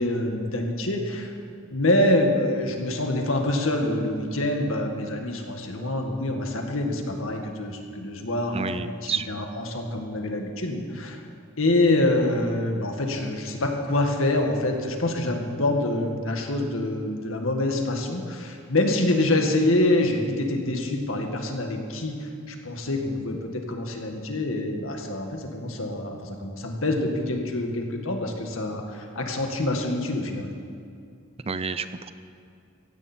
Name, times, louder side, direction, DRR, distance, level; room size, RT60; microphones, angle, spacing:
voice 1, 0.0-1.3 1.7-11.2 11.6-30.5, left 1 dB, 80° left, 3 dB, 1.9 m, -26 dB
voice 2, 8.5-9.3 31.5-32.1, right 5 dB, 30° right, 11 dB, 0.6 m, -30 dB
17.0 x 15.5 x 4.5 m, 2.4 s
head